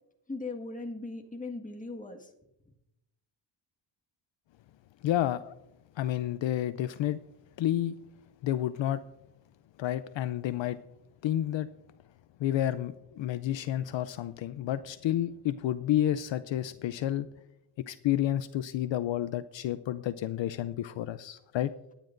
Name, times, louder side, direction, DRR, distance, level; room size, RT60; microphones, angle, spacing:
voice 1, 0.3-2.3, left 3 dB, 15° left, 2 dB, 1.7 m, -38 dB
voice 2, 5.0-5.5 6.0-7.2 7.6-8.0 8.4-9.0 9.8-10.8 11.2-11.7 12.4-17.3 17.9-21.7, left 12 dB, 65° left, 13 dB, 0.6 m, -30 dB
19.5 x 10.0 x 2.6 m, 0.87 s
cardioid pair, 100°, 49 cm